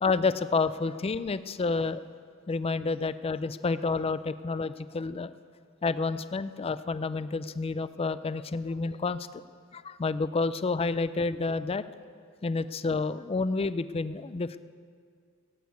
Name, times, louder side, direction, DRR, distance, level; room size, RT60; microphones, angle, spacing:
voice 1, 0.0-2.0 2.5-5.3 5.8-9.2 9.7-11.8 12.4-14.6, left 4 dB, 25° left, 14 dB, 0.4 m, -29 dB
17.0 x 8.4 x 8.1 m, 2.1 s
head